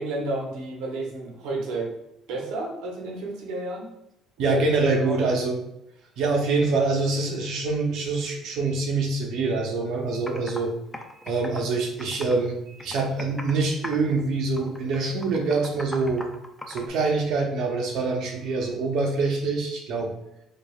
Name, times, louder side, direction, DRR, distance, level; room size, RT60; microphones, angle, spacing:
voice 1, 0.0-1.9 2.3-3.9 4.4-4.6 5.0-5.2, right 2 dB, 85° right, -1 dB, 0.9 m, -31 dB
voice 2, 4.4-5.6 6.2-10.7 11.2-16.2 16.7-20.1, right 3 dB, 60° right, 1 dB, 0.6 m, -25 dB
Computer keyboard, 9.8-9.9 10.3-10.6 10.9-12.5 12.8-13.6 13.8-14.2 14.6-16.9, left 1 dB, 10° left, 0.3 m, -39 dB
4.6 x 2.4 x 2.3 m, 0.84 s
cardioid pair, 170°, 0 cm